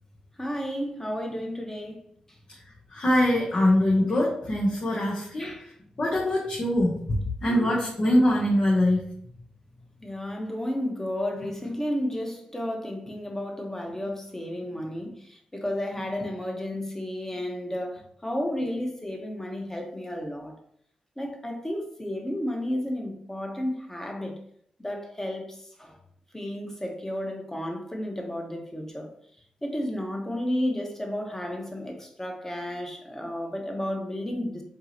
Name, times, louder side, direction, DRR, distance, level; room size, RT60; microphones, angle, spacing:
voice 1, 0.4-2.0 5.4-5.7 7.5-7.9 10.0-20.5 21.2-24.3 24.8-26.0 26.3-29.1 29.6-34.6, left 1 dB, 15° left, 1.2 m, -32 dB
voice 2, 2.9-5.5 6.0-7.0 7.4-9.0, left 1 dB, 45° left, 1.1 m, -23 dB
4.6 x 3.0 x 2.9 m
cardioid pair, 55°, 3 cm